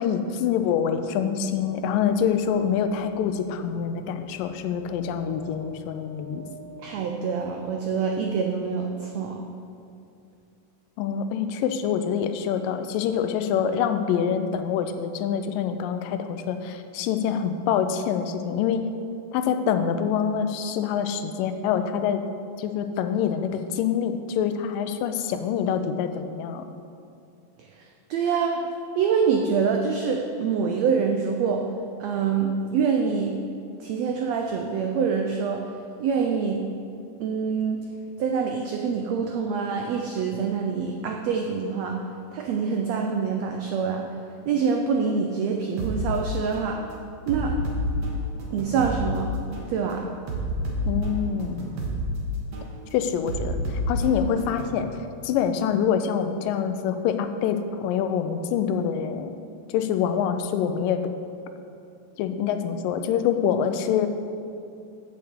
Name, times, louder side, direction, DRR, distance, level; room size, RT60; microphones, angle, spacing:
voice 1, 0.0-6.4 11.0-18.9 19.3-22.2 22.6-26.7 50.9-51.7 52.9-54.9 55.2-59.3 59.7-61.1 62.2-64.1, left 8 dB, 90° left, 8 dB, 2.3 m, -25 dB
sound 1, 1.2-8.1, equal, 65° left, 2.2 m, -47 dB
voice 2, 6.8-9.4 27.6-31.7 32.0-33.4 33.8-35.6 36.0-36.7 37.2-37.8 38.2-42.0 42.3-44.1 44.5-46.8 47.3-47.6 48.5-49.3 49.7-50.1, right 6 dB, 90° right, 3 dB, 1.5 m, -25 dB
sound 2, 45.8-46.0 46.5-46.7 47.3-49.0 49.5-49.7 50.3-52.0 52.5-52.7 53.3-54.8, right 1 dB, 60° right, 2.4 m, -30 dB
8.2 x 6.7 x 7.9 m, 2.5 s
omnidirectional pair, 3.8 m